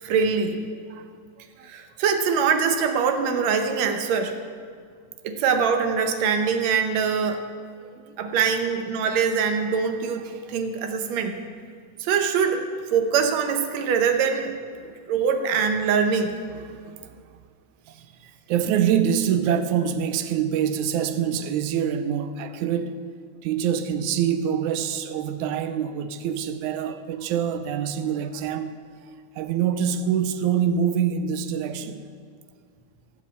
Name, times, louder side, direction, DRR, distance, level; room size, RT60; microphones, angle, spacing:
voice 1, 0.0-0.6 1.6-4.4 5.2-7.5 8.2-11.4 12.0-12.7 12.9-14.6 14.8-16.3, right 6 dB, 70° right, 2.0 m, -23 dB
voice 2, 7.9-8.3 14.8-14.9 16.5-17.0 18.2-23.0 23.4-28.8 29.4-32.1, right 8 dB, 90° right, 2.0 m, -25 dB
15.0 x 5.2 x 8.2 m
omnidirectional pair, 3.4 m